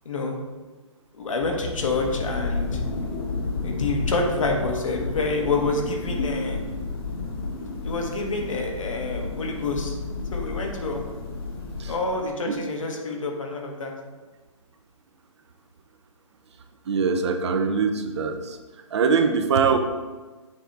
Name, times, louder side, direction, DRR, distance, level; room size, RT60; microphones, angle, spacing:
voice 1, 0.0-0.4 1.1-2.8 3.6-6.6 7.8-9.9 10.3-11.0 11.9-13.9, left 3 dB, 75° left, 2 dB, 1.3 m, -27 dB
Thunder, 1.6-12.4, left 3 dB, 45° left, 1.2 m, -31 dB
voice 2, 16.9-18.6 18.9-19.8, right 5 dB, 55° right, 6 dB, 0.7 m, -22 dB
7.1 x 3.3 x 4.1 m, 1.3 s
hypercardioid pair, 140°, 17 cm